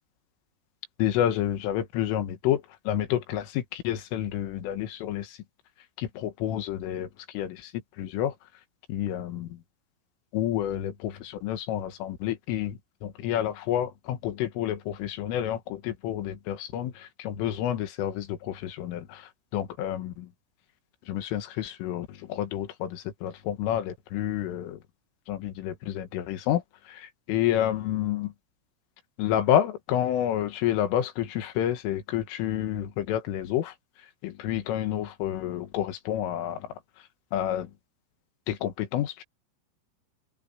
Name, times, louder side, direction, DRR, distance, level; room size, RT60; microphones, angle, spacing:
voice 1, 1.0-5.3 6.0-7.1 7.3-7.7 8.0-8.3 8.9-9.5 10.3-19.2 19.5-20.3 21.1-24.8 25.3-26.6 26.9-28.3 29.2-33.7 34.2-36.6 37.3-37.7 38.5-39.2, left 11 dB, 90° left, 4.3 m, -29 dB
omnidirectional pair, 5.6 m